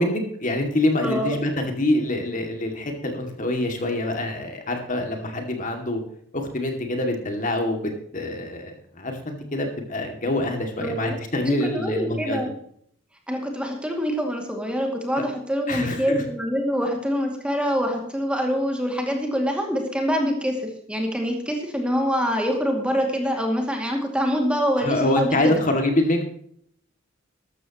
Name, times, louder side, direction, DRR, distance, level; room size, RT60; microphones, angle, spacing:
voice 1, 0.0-1.5 1.8-6.0 6.3-12.4 15.7-16.2 24.8-26.2, left 1 dB, 40° left, 4 dB, 2.4 m, -25 dB
voice 2, 1.0-1.4 10.8-11.2 11.4-12.5 13.3-25.6, equal, 5° right, 2 dB, 2.4 m, -25 dB
13.5 x 13.0 x 3.0 m, 0.64 s
head